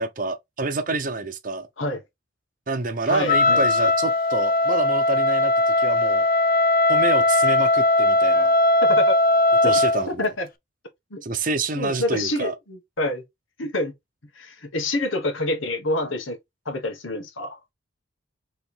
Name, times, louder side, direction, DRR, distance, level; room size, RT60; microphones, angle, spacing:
voice 1, 0.0-1.7 2.7-6.3 6.9-8.5 9.6-10.3 11.2-12.5, right 3 dB, 45° right, 0.7 m, -27 dB
voice 2, 3.1-3.6 8.8-9.2 9.6-9.8 10.1-10.5 11.1-11.2 11.7-13.2 13.6-13.9 14.3-16.4 16.6-17.6, left 1 dB, 85° left, 1.4 m, -27 dB
Wind instrument woodwind instrument, 3.3-10.1, left 2 dB, 45° left, 0.6 m, -19 dB
4.4 x 3.3 x 3.3 m
head